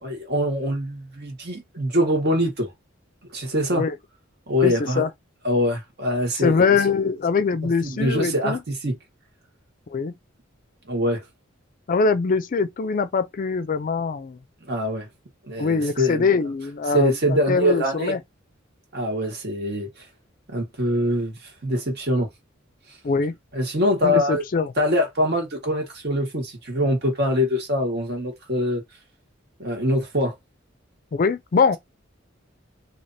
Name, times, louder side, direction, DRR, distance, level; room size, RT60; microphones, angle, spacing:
voice 1, 0.0-2.7 3.3-3.8 4.5-5.0 5.4-6.8 7.8-9.0 10.9-11.2 14.7-15.1 15.5-16.3 16.9-18.1 18.9-19.9 20.5-21.4 21.6-22.3 23.5-24.4 24.8-28.8 29.6-30.3, equal, 55° right, 1.5 m, -23 dB
voice 2, 4.6-5.1 6.4-8.6 9.9-10.1 11.9-14.4 15.6-18.2 23.0-23.4 24.0-24.7 31.1-31.8, left 4 dB, 45° left, 0.4 m, -23 dB
3.3 x 2.8 x 2.7 m
head